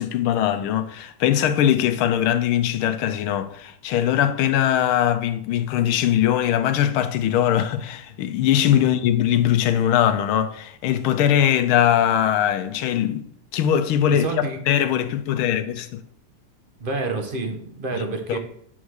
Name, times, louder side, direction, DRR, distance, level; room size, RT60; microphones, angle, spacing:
voice 1, 0.0-13.2 13.5-14.3 14.7-16.0 17.9-18.0 18.3-18.4, left 10 dB, 80° left, 1.5 m, -21 dB
voice 2, 14.1-14.6 16.8-18.4, right 3 dB, 40° right, 0.8 m, -28 dB
9.4 x 3.6 x 6.3 m
omnidirectional pair, 2.3 m